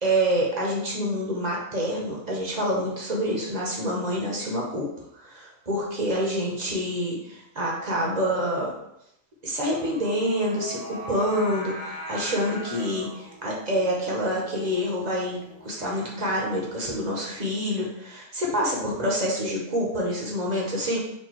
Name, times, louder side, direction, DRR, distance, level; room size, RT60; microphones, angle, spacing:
voice 1, 0.0-4.9 5.1-8.7 9.4-21.0, equal, 35° right, -3 dB, 1.0 m, -27 dB
Singing, 9.7-16.8, equal, 85° right, 1.8 m, -41 dB
4.5 x 2.6 x 4.4 m, 0.79 s
omnidirectional pair, 1.4 m